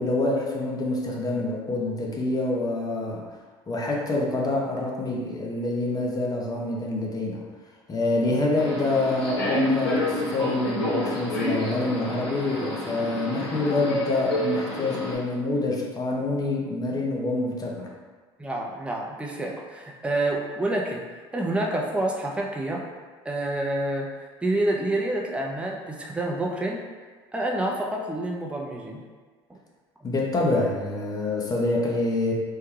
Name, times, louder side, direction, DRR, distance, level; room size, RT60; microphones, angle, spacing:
voice 1, 0.0-3.2 3.7-7.4 7.9-17.9 30.0-32.3, left 2 dB, 30° left, -1 dB, 0.8 m, -26 dB
Subway metro underground, 8.6-15.1, left 1 dB, 75° left, 0.9 m, -29 dB
voice 2, 18.4-21.0 21.3-22.8 23.2-26.8 27.3-29.0, right 1 dB, 10° right, -1 dB, 0.5 m, -28 dB
3.6 x 2.2 x 3.1 m, 1.4 s
hypercardioid pair, 65°, 14 cm